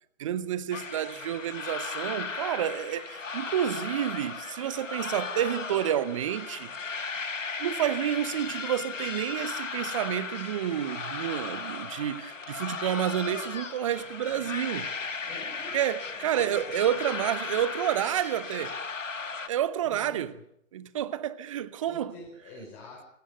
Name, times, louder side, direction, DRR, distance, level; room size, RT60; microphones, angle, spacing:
voice 1, 0.2-6.7 7.6-14.9 15.7-18.8 19.5-20.3 20.7-22.1, right 10 dB, 25° right, 0.9 m, -29 dB
sound 1, 0.7-19.5, left 4 dB, 70° left, 1.8 m, -36 dB
voice 2, 15.3-15.8 16.1-16.6 19.8-20.4 21.9-23.1, left 2 dB, 25° left, 5.8 m, -46 dB
24.5 x 17.5 x 6.8 m
figure-of-eight pair, 135°, 39 cm